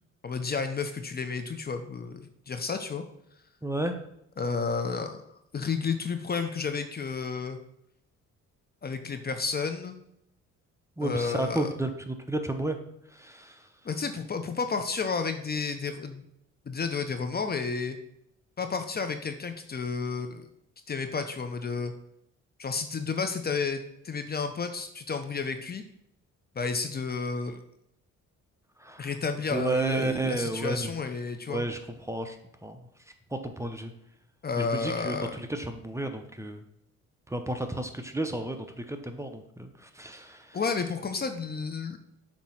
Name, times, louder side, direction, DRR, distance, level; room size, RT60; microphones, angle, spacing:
voice 1, 0.2-3.0 4.4-5.2 5.5-7.6 8.8-9.9 11.0-11.7 13.8-16.2 16.7-18.0 18.6-20.5 20.9-21.9 22.6-25.8 26.6-27.6 29.0-31.6 34.4-35.4 40.5-42.0, left 5 dB, 30° left, 7 dB, 0.7 m, -31 dB
voice 2, 3.6-4.0 11.0-12.8 13.1-13.6 28.8-29.1 29.5-30.9 31.5-32.4 32.6-32.8 33.3-33.9 34.6-36.6 37.3-40.6, right 1 dB, 10° right, 6 dB, 0.7 m, -32 dB
7.3 x 3.0 x 5.7 m, 0.76 s
cardioid pair, 90°, 30 cm